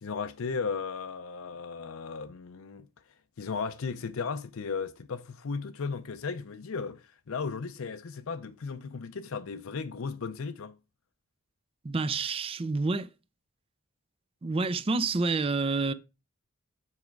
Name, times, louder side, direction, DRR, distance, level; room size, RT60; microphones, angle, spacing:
voice 1, 0.0-2.9 3.4-10.7, left 5 dB, 75° left, 0.5 m, -35 dB
voice 2, 11.8-13.1 14.4-15.9, right 3 dB, 25° right, 0.4 m, -28 dB
7.3 x 4.9 x 4.5 m
head